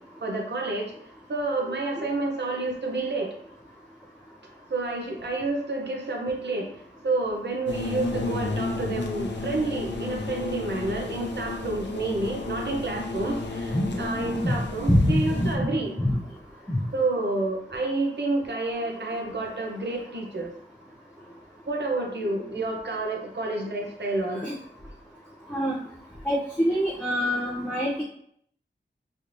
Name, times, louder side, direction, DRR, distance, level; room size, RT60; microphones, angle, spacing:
voice 1, 0.2-0.9 1.3-3.3 4.7-16.0 16.9-20.5 21.7-24.4, right 2 dB, 65° right, 1 dB, 0.6 m, -29 dB
sound 1, 7.7-15.6, left 3 dB, 70° left, 0.5 m, -32 dB
voice 2, 13.7-14.5 14.9-15.7 16.0-16.2 16.7-16.8 24.4-24.5 25.5-25.8 26.3-28.0, equal, 10° left, -5 dB, 0.5 m, -25 dB
3.2 x 2.8 x 2.6 m, 0.67 s
wide cardioid pair, 80°, 19 cm